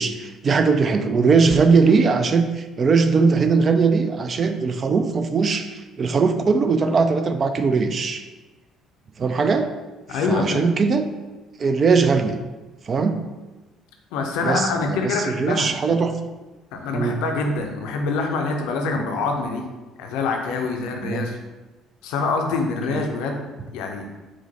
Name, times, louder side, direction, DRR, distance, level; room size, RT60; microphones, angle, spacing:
voice 1, 0.0-8.2 9.2-9.7 10.1-11.0 11.6-12.4 12.9-13.2 14.4-16.2 16.9-17.2 19.0-19.1 21.0-21.3 22.9-23.0, right 4 dB, 40° right, 8 dB, 0.3 m, -20 dB
voice 2, 10.1-10.7 14.1-15.8 16.7-19.6 20.0-21.4 22.0-23.4 23.7-24.1, left 3 dB, 65° left, 3 dB, 0.5 m, -25 dB
4.6 x 2.1 x 3.9 m, 1.2 s
figure-of-eight pair, 50°, 0 cm